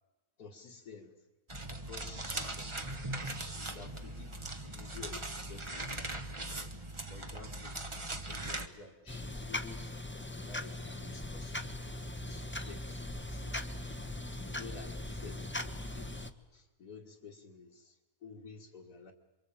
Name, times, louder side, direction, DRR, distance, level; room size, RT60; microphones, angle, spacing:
voice 1, 0.4-1.2 1.7-3.0 3.7-6.7 7.1-7.8 8.3-11.8 12.2-13.7 14.4-16.2 16.5-19.1, left 4 dB, 70° left, -2 dB, 2.3 m, -52 dB
sound 1, 1.5-8.7, right 2 dB, 20° right, 1.4 m, -40 dB
sound 2, 9.1-16.3, left 1 dB, 10° left, 1.1 m, -40 dB
27.5 x 24.5 x 8.7 m, 1.2 s
omnidirectional pair, 1.7 m